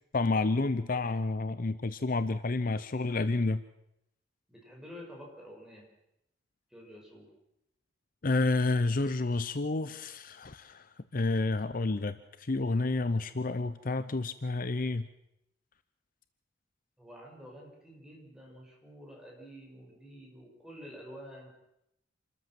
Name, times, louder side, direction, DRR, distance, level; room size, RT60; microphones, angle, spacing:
voice 1, 0.1-3.6 8.2-10.9 11.1-15.1, left 3 dB, 50° left, 12 dB, 0.7 m, -30 dB
voice 2, 4.5-5.9 6.7-7.3 17.0-21.5, equal, 5° right, -1 dB, 5.6 m, -49 dB
27.0 x 13.5 x 7.6 m, 0.82 s
head